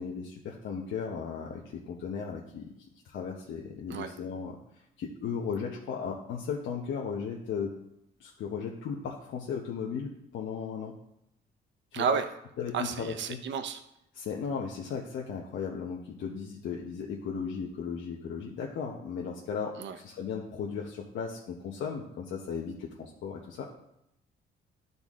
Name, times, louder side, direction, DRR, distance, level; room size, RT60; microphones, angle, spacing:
voice 1, 0.0-2.7 3.0-4.6 5.0-7.7 8.2-10.9 11.9-12.1 12.6-13.4 14.1-23.7, left 6 dB, 75° left, -2 dB, 1.0 m, -36 dB
voice 2, 11.9-12.3 12.7-13.8 19.8-20.0, right 6 dB, 70° right, 9 dB, 0.8 m, -31 dB
12.0 x 4.0 x 3.7 m, 0.81 s
cardioid pair, 90°, 20 cm